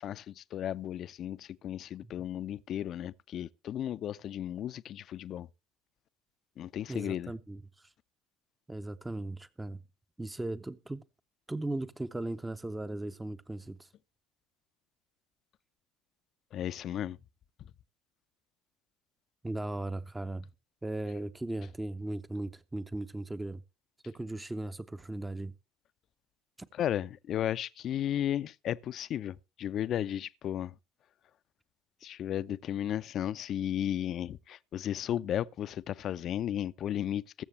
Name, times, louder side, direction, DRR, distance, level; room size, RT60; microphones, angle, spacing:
voice 1, 0.0-5.5 6.6-7.3 16.5-17.2 26.8-30.7 32.0-37.4, left 11 dB, 45° left, 0.5 m, -34 dB
voice 2, 6.9-7.9 8.7-9.8 10.2-11.0 11.5-13.9 19.4-20.5 20.8-23.6 24.0-25.5 26.6-26.7, right 2 dB, 10° right, 0.6 m, -37 dB
21.0 x 7.1 x 3.3 m
figure-of-eight pair, 65°, 0 cm